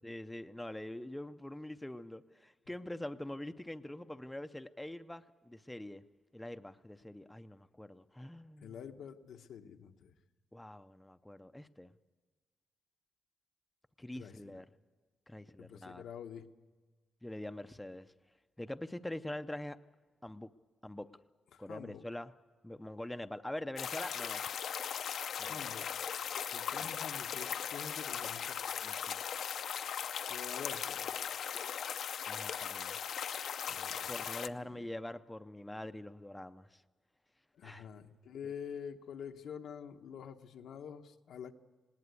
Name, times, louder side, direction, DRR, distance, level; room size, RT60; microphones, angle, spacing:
voice 1, 0.0-6.0 6.3-8.8 10.5-11.9 14.0-14.7 15.3-16.1 17.2-18.1 18.6-19.8 20.2-20.5 20.8-21.1 21.6-22.3 22.6-24.4 25.4-25.7 26.8-27.0 28.8-29.2 32.3-33.0 34.1-36.8 37.6-37.9 38.4-38.5, left 1 dB, 5° left, 9 dB, 0.5 m, -44 dB
voice 2, 8.6-10.1 14.1-14.6 15.6-16.5 21.5-22.0 25.4-25.9 26.5-28.6 30.3-31.1 32.0-32.1 33.7-34.1 34.5-34.9 37.6-41.5, left 7 dB, 85° left, 6 dB, 1.0 m, -47 dB
sound 1, 23.8-34.5, left 8 dB, 70° left, 0.6 m, -38 dB
19.5 x 18.5 x 8.2 m, 1.3 s
wide cardioid pair, 135°, 0 cm